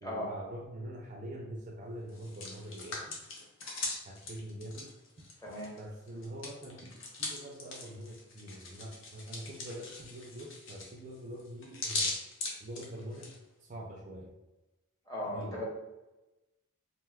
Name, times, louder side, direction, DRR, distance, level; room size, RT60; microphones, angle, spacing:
voice 1, 0.0-3.2 4.0-4.9 5.8-6.9 7.2-12.1 12.6-13.3 13.6-14.3 15.2-15.6, equal, 35° right, 0 dB, 0.4 m, -44 dB
Hands, 2.1-5.8 6.1-13.3, left 2 dB, 55° left, 0.7 m, -40 dB
voice 2, 5.4-5.7 15.1-15.6, left 1 dB, 15° left, -5 dB, 0.7 m, -37 dB
2.6 x 2.2 x 3.4 m, 1.0 s
head